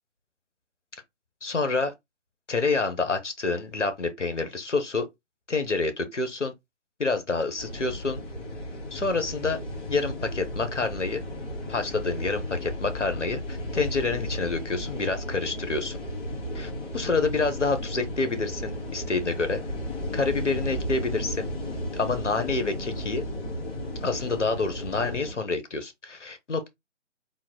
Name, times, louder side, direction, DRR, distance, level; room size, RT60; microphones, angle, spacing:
voice 1, 1.4-1.9 2.5-5.1 5.5-6.5 7.0-8.2 8.9-9.6 9.9-11.2 11.7-16.0 16.5-16.7 16.9-19.6 20.1-21.5 21.9-23.2 24.0-26.7, left 3 dB, 75° left, 1.2 m, -28 dB
sound 1, 7.6-25.3, equal, 15° left, 1.9 m, -34 dB
3.8 x 2.5 x 3.8 m
figure-of-eight pair, 150°, 36 cm